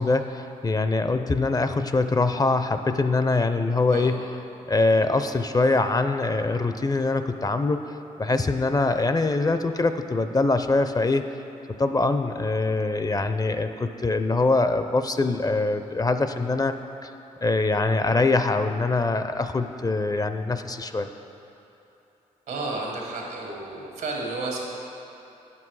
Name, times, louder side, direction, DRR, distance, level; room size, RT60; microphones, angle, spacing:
voice 1, 0.0-4.3 4.7-7.8 8.2-11.2 11.8-16.8 17.0-17.1 17.4-21.1, left 3 dB, 25° left, 9 dB, 0.4 m, -23 dB
voice 2, 22.5-24.6, right 2 dB, 85° right, -1 dB, 1.6 m, -32 dB
8.7 x 6.0 x 4.7 m, 3.0 s
supercardioid pair, 55°, 15 cm